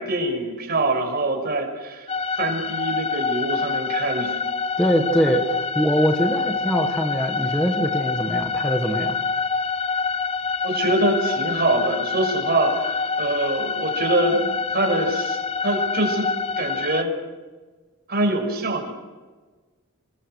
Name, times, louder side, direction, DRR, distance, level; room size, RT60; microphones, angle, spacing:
voice 1, 0.0-2.1 2.4-4.4 10.6-16.3 16.6-17.1 18.1-18.9, right 2 dB, 45° right, 3 dB, 6.1 m, -24 dB
sound 1, 2.1-17.0, left 5 dB, 25° left, 0.8 m, -26 dB
voice 2, 4.8-9.2, equal, 5° left, 3 dB, 1.7 m, -23 dB
27.5 x 22.0 x 6.5 m, 1.3 s
head